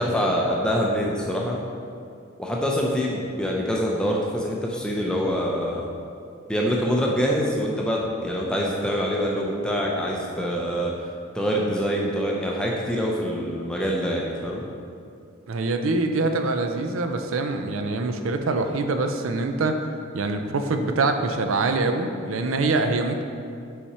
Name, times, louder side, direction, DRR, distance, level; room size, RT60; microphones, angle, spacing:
voice 1, 0.0-1.6 2.4-5.8 6.5-10.9 11.3-14.6, equal, 5° left, -2 dB, 0.4 m, -25 dB
voice 2, 15.5-19.8 20.1-23.2, right 3 dB, 70° right, 6 dB, 0.5 m, -24 dB
5.6 x 4.9 x 4.2 m, 2.4 s
head